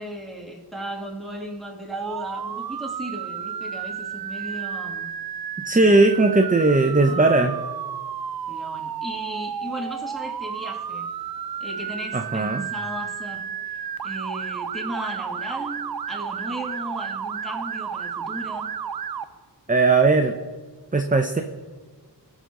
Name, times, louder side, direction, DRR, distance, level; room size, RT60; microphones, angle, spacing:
voice 1, 0.0-5.1 5.7-6.0 6.9-7.3 8.5-11.1 11.6-13.5 14.0-18.7, equal, ahead, -2 dB, 2.1 m, -36 dB
Motor vehicle (road) / Siren, 1.9-19.2, right 7 dB, 60° right, 0.5 m, -32 dB
voice 2, 5.7-7.5 12.1-12.7 19.7-20.3 20.9-21.4, right 3 dB, 20° right, 5 dB, 0.6 m, -18 dB
18.5 x 6.2 x 3.8 m, 1.5 s
wide cardioid pair, 55°, 43 cm